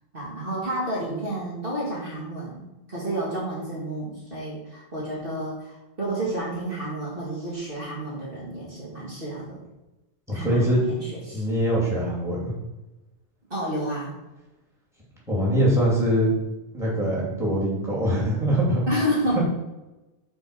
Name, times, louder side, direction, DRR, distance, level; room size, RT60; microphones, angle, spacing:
voice 1, 0.1-9.6 10.3-11.5 13.5-14.1 18.9-19.4, right 1 dB, 50° right, -5 dB, 2.2 m, -30 dB
voice 2, 10.3-11.1 11.3-12.5 15.3-16.3 16.7-18.8, equal, ahead, -5 dB, 2.8 m, -23 dB
6.7 x 4.6 x 6.1 m, 1.0 s
omnidirectional pair, 1.2 m